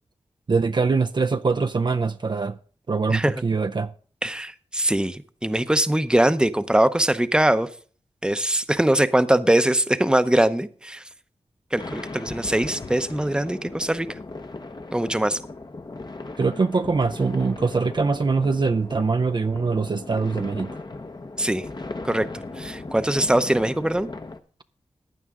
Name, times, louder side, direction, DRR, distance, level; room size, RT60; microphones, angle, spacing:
voice 1, 0.5-2.6 2.9-3.9 16.4-20.8, right 4 dB, 40° right, 0.5 m, -23 dB
voice 2, 4.2-7.7 8.2-11.0 11.7-14.1 14.9-15.4 21.4-21.6 22.0-22.3 22.6-24.1, right 1 dB, 5° right, 0.7 m, -22 dB
sound 1, 11.8-24.4, left 3 dB, 40° left, 0.9 m, -37 dB
15.5 x 9.7 x 3.7 m
wide cardioid pair, 70°, 12 cm